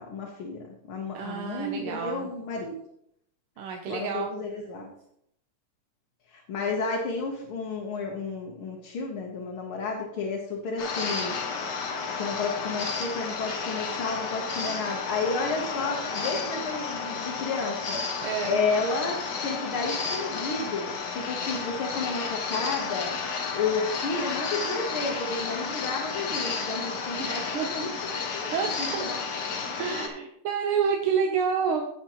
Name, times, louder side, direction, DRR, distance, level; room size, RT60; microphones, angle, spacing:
voice 1, 0.0-2.8 3.9-4.9 6.3-28.5 28.8-29.2, left 4 dB, 80° left, 0 dB, 2.0 m, -32 dB
voice 2, 1.1-2.3 3.6-4.3 18.2-18.6 21.7-21.9 27.2-27.7 28.5-29.1 29.8-31.9, right 6 dB, 90° right, 2 dB, 1.8 m, -29 dB
sound 1, 10.8-30.1, left 5 dB, 60° left, 1.7 m, -32 dB
16.0 x 6.0 x 3.0 m, 0.73 s
omnidirectional pair, 2.3 m